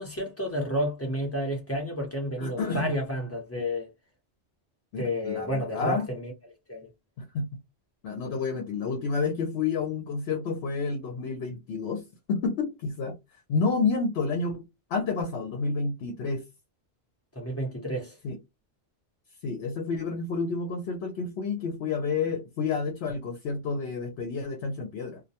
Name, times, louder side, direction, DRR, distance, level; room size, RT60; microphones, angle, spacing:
voice 1, 0.0-3.9 5.0-6.3 6.7-6.9 17.3-18.2, equal, 15° left, 0.8 m, -31 dB
voice 2, 2.4-2.9 4.9-6.1 7.2-7.5 8.0-13.2 13.5-14.6 14.9-16.4 18.2-18.4 19.4-25.2, left 4 dB, 70° left, 0.9 m, -30 dB
2.3 x 2.1 x 2.7 m
omnidirectional pair, 1.1 m